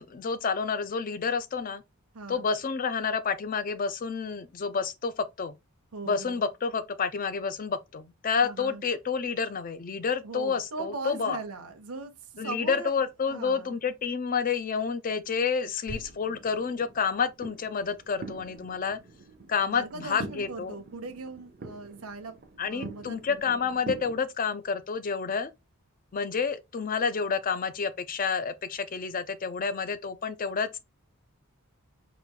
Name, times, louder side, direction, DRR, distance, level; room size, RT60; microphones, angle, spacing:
voice 1, 0.0-1.8 2.3-5.5 6.0-11.4 12.4-19.0 19.5-20.8 22.6-25.5 26.1-30.8, left 5 dB, 40° left, 0.4 m, -29 dB
voice 2, 2.1-2.5 5.9-6.4 8.4-8.8 10.2-12.9 13.3-13.7 19.7-22.3 22.7-23.7, right 3 dB, 85° right, 0.7 m, -39 dB
sound 1, 15.9-24.2, right 3 dB, 45° right, 0.5 m, -44 dB
4.2 x 2.4 x 3.6 m
head